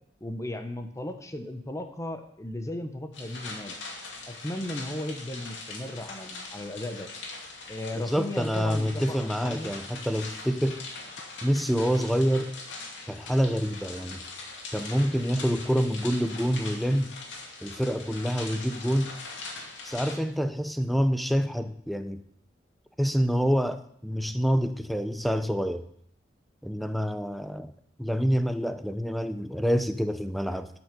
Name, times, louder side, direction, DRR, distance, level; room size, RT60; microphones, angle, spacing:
voice 1, 0.2-3.7 4.3-7.1 7.7-9.7, left 1 dB, 15° left, 7 dB, 1.1 m, -36 dB
sound 1, 3.1-20.2, left 3 dB, 85° left, 2.6 m, -41 dB
voice 2, 8.1-10.8 11.4-12.5 13.1-14.3 14.7-17.1 17.6-19.1 19.8-22.2 23.0-25.8 26.6-27.7 28.0-30.7, equal, ahead, 10 dB, 0.6 m, -27 dB
12.0 x 6.2 x 6.9 m, 0.69 s
head